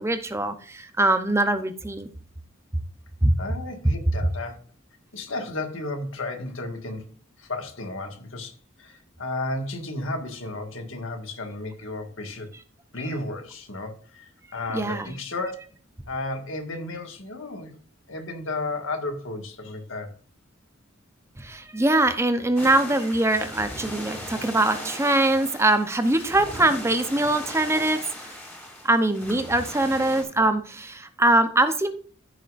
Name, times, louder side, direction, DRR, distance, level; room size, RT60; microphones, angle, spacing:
voice 1, 0.0-2.1 3.2-3.3 14.7-15.1 21.4-28.3 28.8-31.9, right 2 dB, 15° right, 9 dB, 0.7 m, -22 dB
voice 2, 3.4-4.6 5.1-8.5 8.8-12.5 12.9-15.6 16.1-17.8 18.1-20.1 29.8-29.9, left 2 dB, 85° left, 5 dB, 1.8 m, -33 dB
sound 1, 22.6-30.2, equal, 10° left, 3.0 m, -38 dB
14.5 x 6.5 x 2.5 m, 0.40 s
head